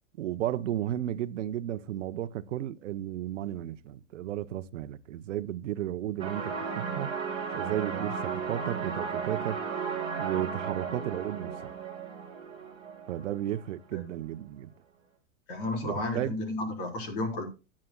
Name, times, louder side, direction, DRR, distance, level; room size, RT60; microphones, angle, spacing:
voice 1, 0.2-7.1 7.5-9.6 10.2-11.7 13.1-14.7 15.8-16.4, right 12 dB, 70° right, 0.9 m, -34 dB
sound 1, 6.2-13.7, right 5 dB, 15° right, 2.8 m, -35 dB
voice 2, 15.5-17.4, left 2 dB, 45° left, 4.1 m, -32 dB
19.0 x 8.6 x 2.3 m
supercardioid pair, 175°, 38 cm